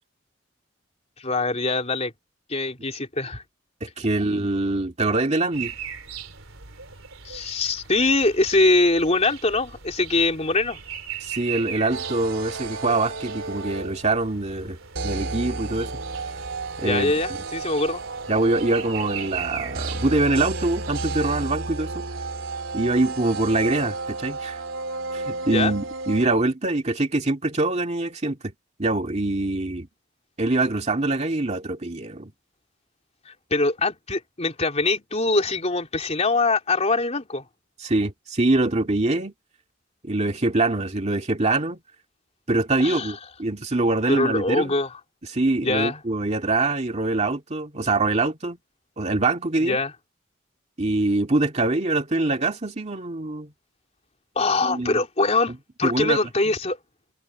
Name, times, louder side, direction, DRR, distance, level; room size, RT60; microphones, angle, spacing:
voice 1, 1.2-2.1 2.5-3.4 7.2-10.8 16.8-18.0 25.5-25.7 33.2-37.4 42.8-43.1 44.1-44.9 45.6-46.0 49.6-49.9 54.3-56.8, left 2 dB, 35° left, 3.4 m, -23 dB
voice 2, 3.8-5.7 11.2-14.8 15.0-15.9 16.8-17.1 18.3-22.1 22.7-24.6 25.1-28.5 28.8-29.9 30.4-32.3 37.8-39.3 40.0-41.8 42.5-44.7 45.3-48.6 49.0-49.8 50.8-53.5 54.6-55.0 55.8-56.2, right 2 dB, 35° right, 2.2 m, -24 dB
sound 1, 5.5-21.5, right 8 dB, 90° right, 3.3 m, -39 dB
sound 2, 11.9-14.2 14.9-26.3, right 3 dB, 70° right, 3.6 m, -32 dB
head